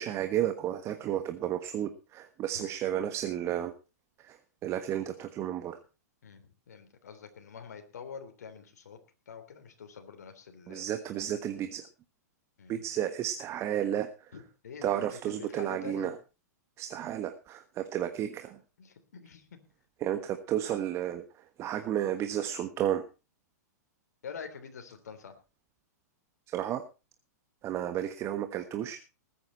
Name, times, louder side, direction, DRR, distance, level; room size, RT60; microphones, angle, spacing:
voice 1, 0.0-3.7 4.2-5.8 10.7-11.9 12.7-14.3 14.8-16.2 16.8-18.6 20.0-23.0 26.5-26.8 27.6-29.0, right 11 dB, 30° right, 9 dB, 1.3 m, -32 dB
voice 2, 6.2-9.0 9.3-10.9 12.6-12.7 14.3-16.1 18.8-19.6 24.2-25.4, left 6 dB, 70° left, 7 dB, 3.3 m, -46 dB
20.0 x 9.6 x 4.2 m, 0.31 s
hypercardioid pair, 110°, 9 cm